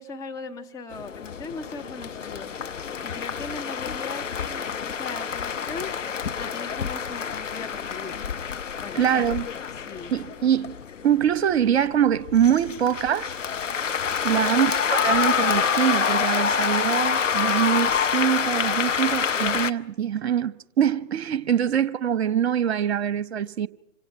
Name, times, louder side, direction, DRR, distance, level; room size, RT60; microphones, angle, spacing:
voice 1, 0.0-2.5 3.0-8.2 8.8-9.3 9.8-10.1, left 4 dB, 10° left, 0.9 m, -39 dB
sound 1, 0.9-19.7, left 7 dB, 75° left, 1.0 m, -27 dB
voice 2, 8.9-9.5 10.1-10.7 11.0-13.3 14.2-23.7, right 9 dB, 55° right, 1.0 m, -23 dB
28.0 x 25.5 x 5.8 m
figure-of-eight pair, 125°, 38 cm